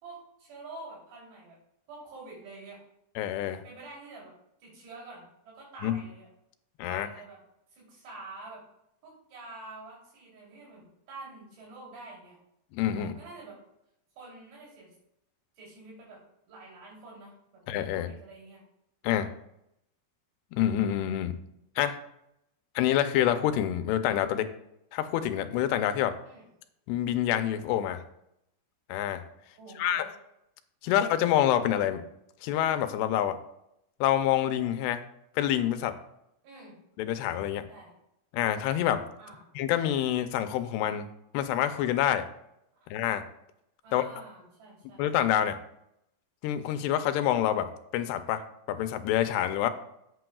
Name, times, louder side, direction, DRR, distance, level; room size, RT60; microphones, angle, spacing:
voice 1, 0.0-1.6 1.9-2.8 3.6-4.3 4.6-6.3 6.9-7.4 7.7-8.6 9.0-12.4 13.0-13.6 14.2-14.9 15.6-16.2 16.5-17.6 17.9-18.6 26.2-26.5 29.4-30.1 30.8-31.1 36.4-36.8 37.7-37.9 39.2-39.5 43.8-45.1, right 3 dB, 80° right, -5 dB, 5.3 m, -47 dB
voice 2, 3.2-3.6 5.8-6.0 6.8-7.1 12.7-13.1 17.7-18.1 19.0-19.3 20.5-21.3 21.8-22.0 22.8-24.5 24.9-26.1 26.9-28.0 28.9-29.2 29.8-30.1 30.8-32.0 32.4-33.4 34.0-35.0 35.4-35.9 37.0-37.7 38.3-39.0 39.6-41.1 41.3-42.2 42.9-43.2 43.9-44.0 45.0-45.6 46.4-47.7 47.9-48.4 48.7-49.7, left 11 dB, 85° left, 10 dB, 2.8 m, -27 dB
14.0 x 8.3 x 2.3 m, 0.80 s
omnidirectional pair, 4.7 m